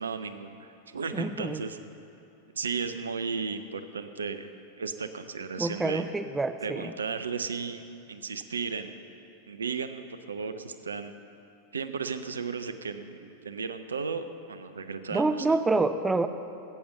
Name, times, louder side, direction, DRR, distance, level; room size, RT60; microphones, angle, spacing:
voice 1, 0.0-1.8 2.5-4.5 4.8-6.1 6.6-7.8 8.1-9.0 9.5-11.1 11.7-15.6, right 5 dB, 70° right, 10 dB, 0.6 m, -35 dB
voice 2, 1.1-1.6 5.6-6.9 15.1-16.3, right 3 dB, 10° right, 9 dB, 0.5 m, -27 dB
14.0 x 8.6 x 6.6 m, 2.9 s
figure-of-eight pair, 90°, 0 cm